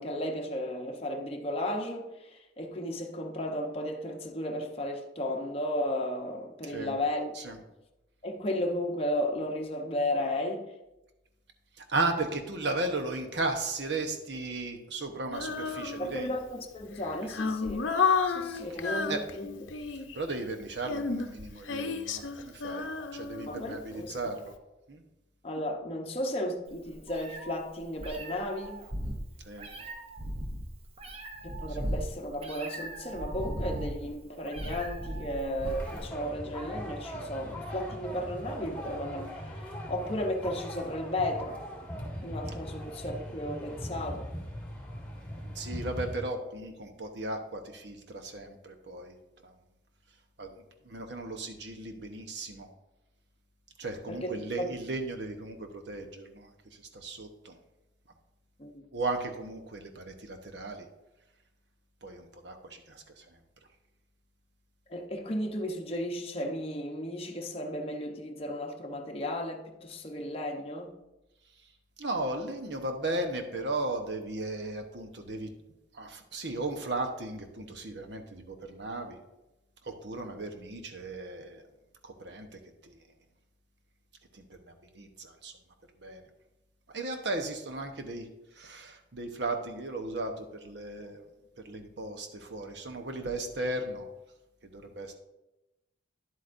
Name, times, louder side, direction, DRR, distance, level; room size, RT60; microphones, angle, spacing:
voice 1, 0.0-7.3 8.2-10.7 16.0-17.8 18.3-19.5 23.5-24.2 25.4-28.8 31.4-41.6 42.2-44.3 54.1-54.6 58.6-58.8 64.9-71.0, left 1 dB, 30° left, 0.8 m, -34 dB
voice 2, 6.6-6.9 7.3-7.6 11.8-16.3 18.7-19.2 20.1-22.9 23.1-24.5 24.9-25.0 29.4-29.7 31.7-31.8 45.5-49.2 50.4-50.5 50.8-52.7 53.8-56.5 56.9-57.5 58.9-60.9 62.0-63.2 72.0-75.5 75.9-79.2 79.8-81.6 82.0-83.0 84.3-84.4 84.9-85.5 86.0-86.2 86.9-88.2 88.6-91.2 91.6-94.1 94.6-95.1, right 2 dB, 65° right, 1.0 m, -36 dB
Female singing, 15.3-16.4 17.0-20.2 20.8-24.0, left 5 dB, 85° left, 0.7 m, -31 dB
Meow, 26.7-36.1, right 1 dB, 30° right, 0.8 m, -37 dB
sound 1, 35.6-46.1, equal, 10° left, 2.0 m, -40 dB
10.5 x 8.0 x 2.6 m
head